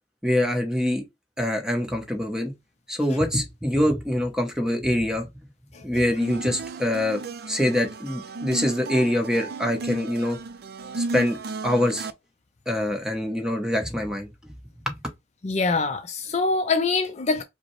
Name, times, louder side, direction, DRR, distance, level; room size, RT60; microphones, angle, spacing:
voice 1, 0.2-1.0 1.4-2.5 2.9-5.3 5.8-7.2 7.5-10.4 10.9-11.4 11.6-12.1 12.7-14.5 14.9-15.0, left 1 dB, 5° right, 0.9 m, -24 dB
sound 1, 6.2-12.1, right 3 dB, 65° right, 0.5 m, -34 dB
voice 2, 15.4-17.4, left 3 dB, 40° left, 0.5 m, -24 dB
4.9 x 2.1 x 3.1 m
head